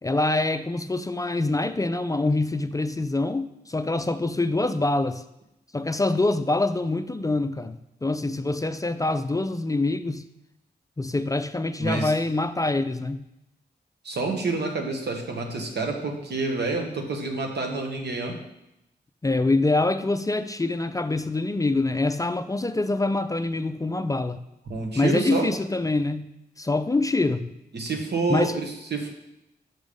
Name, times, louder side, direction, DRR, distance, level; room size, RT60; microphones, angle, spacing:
voice 1, 0.0-5.2 5.7-10.2 11.0-13.2 19.2-24.4 24.9-26.3 26.6-27.5 28.3-28.5, left 2 dB, 20° left, 0.4 m, -25 dB
voice 2, 11.8-12.1 14.0-18.4 24.7-25.5 27.7-29.1, right 3 dB, 80° right, 1.2 m, -28 dB
6.2 x 5.1 x 5.2 m
cardioid pair, 60°, 17 cm